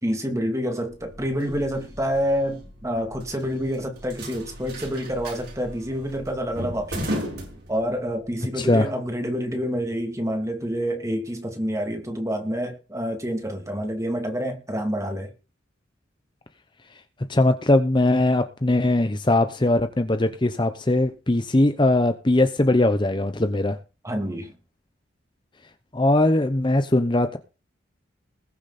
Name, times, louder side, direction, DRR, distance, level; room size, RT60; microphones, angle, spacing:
voice 1, 0.0-7.3 7.7-15.3 24.0-24.5, equal, 15° right, 2.6 m, -28 dB
sound 1, 0.9-8.2, equal, 55° right, 6.1 m, -36 dB
voice 2, 8.6-8.9 17.3-23.8 25.9-27.4, left 2 dB, 25° left, 0.8 m, -20 dB
20.5 x 6.9 x 4.2 m
head